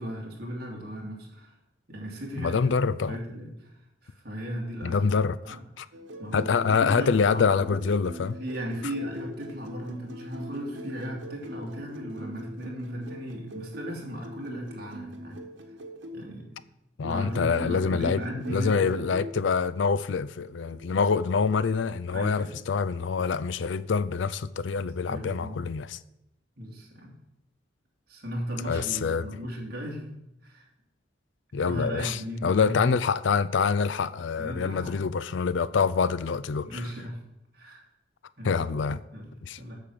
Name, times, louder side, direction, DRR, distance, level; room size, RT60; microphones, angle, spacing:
voice 1, 0.0-1.5 1.9-2.8 3.1-5.1 5.4-5.6 6.2-6.5 6.8-7.5 8.4-15.4 16.1-16.6 17.0-19.1 20.9-21.0 22.1-22.7 25.1-25.6 26.6-27.1 28.1-30.7 31.6-32.8 34.4-34.9 36.6-37.2 37.5-37.8 38.4-38.6 39.1-39.8, equal, 55° right, 2.7 m, -36 dB
voice 2, 2.4-3.2 4.8-5.9 6.3-8.4 17.0-18.2 18.5-26.0 28.6-29.3 31.5-36.9 38.4-39.0 39.4-39.6, left 5 dB, 75° left, 0.4 m, -26 dB
sound 1, 5.9-16.2 17.0-19.3 20.5-21.0, equal, 85° right, 1.5 m, -42 dB
8.5 x 6.5 x 7.6 m
head